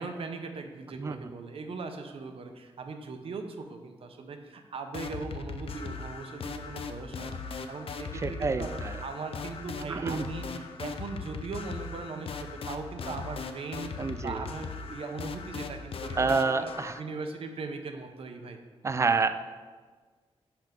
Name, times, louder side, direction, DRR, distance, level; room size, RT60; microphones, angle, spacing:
voice 1, 0.0-7.4 7.7-16.7 17.0-18.6, right 4 dB, 65° right, 5 dB, 0.7 m, -39 dB
voice 2, 0.9-1.3 8.2-9.0 9.8-10.2 14.0-14.5 16.2-17.0 18.8-19.3, right 4 dB, 30° right, 11 dB, 0.3 m, -28 dB
sound 1, 4.9-17.0, left 5 dB, 65° left, 0.5 m, -39 dB
5.9 x 4.4 x 5.1 m, 1.5 s
wide cardioid pair, 100°, 10 cm